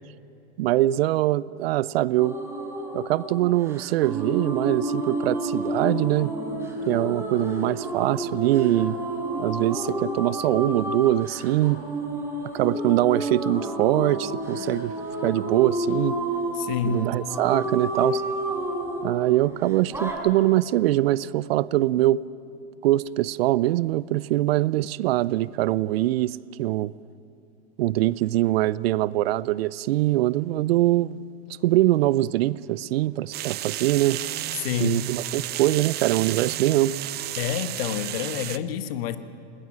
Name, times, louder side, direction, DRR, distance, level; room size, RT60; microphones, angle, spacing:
voice 1, 0.6-2.4 2.9-6.3 6.9-9.0 9.4-11.8 12.5-14.9 15.2-16.2 16.8-18.2 19.0-22.2 22.8-26.9 27.8-31.3 31.6-34.2 34.8-36.9, right 15 dB, 60° right, 0.6 m, -23 dB
sound 1, 2.2-20.1, right 1 dB, 10° right, 5.4 m, -30 dB
voice 2, 16.6-17.2 34.6-35.2 37.4-39.2, left 9 dB, 60° left, 1.5 m, -28 dB
sound 2, 33.3-38.6, right 14 dB, 30° right, 0.7 m, -32 dB
20.0 x 19.5 x 8.9 m
hypercardioid pair, 105°, 34 cm